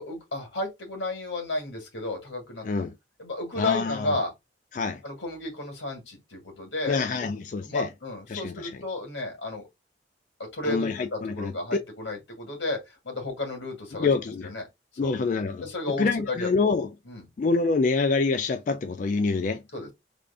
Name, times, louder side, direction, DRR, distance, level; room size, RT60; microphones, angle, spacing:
voice 1, 0.0-2.7 3.2-4.3 5.0-7.3 7.6-9.7 10.4-14.1 14.4-14.6 15.0-15.1 15.6-16.5 17.1-17.3 19.7-19.9, left 2 dB, 85° left, 2.0 m, -33 dB
voice 2, 3.6-4.1 4.7-5.0 6.9-7.9 8.3-8.7 10.7-11.5 13.9-14.5 15.0-15.7 16.0-16.9 17.4-19.6, left 4 dB, 45° left, 0.3 m, -26 dB
3.4 x 2.5 x 3.6 m
head